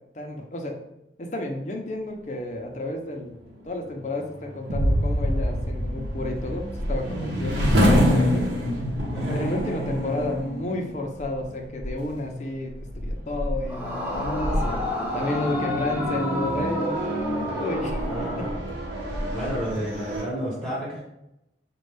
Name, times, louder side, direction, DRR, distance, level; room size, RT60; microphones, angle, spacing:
voice 1, 0.1-0.8 1.2-3.3 3.6-8.5 9.3-14.8 15.1-17.0 17.6-18.5, left 1 dB, 40° left, 2 dB, 0.6 m, -31 dB
sound 1, 3.2-20.2, equal, 85° right, 0.9 m, -28 dB
sound 2, 4.7-7.7, equal, 70° right, 0.5 m, -27 dB
Yell / Screaming, 13.7-18.6, left 2 dB, 10° right, 0.8 m, -31 dB
voice 2, 18.0-18.5 19.3-21.1, equal, 25° right, -9 dB, 1.4 m, -31 dB
5.2 x 2.3 x 3.3 m, 0.86 s
head